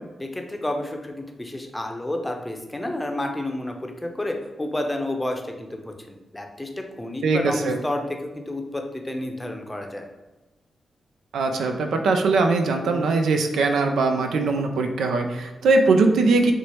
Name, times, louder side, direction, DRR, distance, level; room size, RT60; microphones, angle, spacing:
voice 1, 0.2-6.7 7.0-10.0, left 1 dB, 15° left, 3 dB, 0.6 m, -30 dB
voice 2, 7.2-7.8 11.3-16.5, right 3 dB, 85° right, 4 dB, 0.3 m, -21 dB
4.3 x 2.0 x 3.0 m, 1.1 s
supercardioid pair, 50°, 0 cm